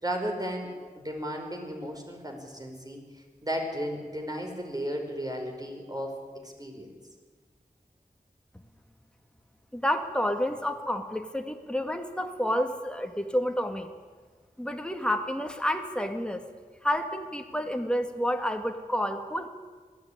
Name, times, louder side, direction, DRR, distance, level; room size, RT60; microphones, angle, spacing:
voice 1, 0.0-3.0 3.4-6.2 6.4-6.9, equal, 25° right, 2 dB, 5.3 m, -34 dB
voice 2, 9.7-13.9 14.6-16.4 16.8-19.5, equal, 5° left, 5 dB, 2.2 m, -29 dB
20.5 x 15.0 x 10.0 m, 1.5 s
wide cardioid pair, 60°, 15 cm